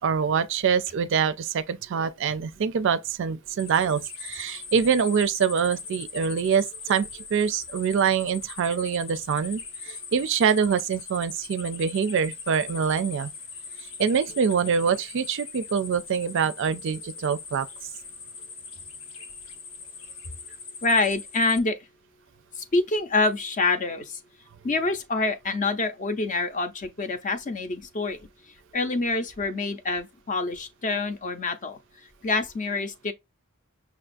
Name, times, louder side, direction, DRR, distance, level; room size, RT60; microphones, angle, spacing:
voice 1, 0.0-13.3 14.0-17.7, right 6 dB, 60° right, 0.4 m, -25 dB
sound 1, 3.6-21.6, left 5 dB, 70° left, 0.8 m, -41 dB
voice 2, 20.8-21.8 22.6-24.2 24.6-28.2 28.7-31.8 32.2-33.1, left 3 dB, 40° left, 0.6 m, -26 dB
5.9 x 2.3 x 2.5 m
head